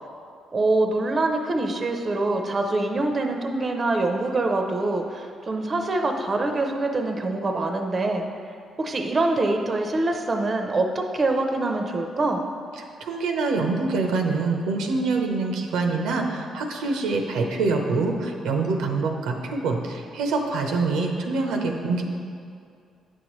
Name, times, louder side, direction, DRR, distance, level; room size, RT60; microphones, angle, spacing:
voice 1, 0.5-8.2 8.8-12.5, right 2 dB, 35° right, 4 dB, 0.6 m, -24 dB
voice 2, 13.0-22.0, right 3 dB, 90° right, 3 dB, 0.7 m, -25 dB
9.0 x 6.4 x 3.1 m, 2.3 s
cardioid pair, 90°, 0 cm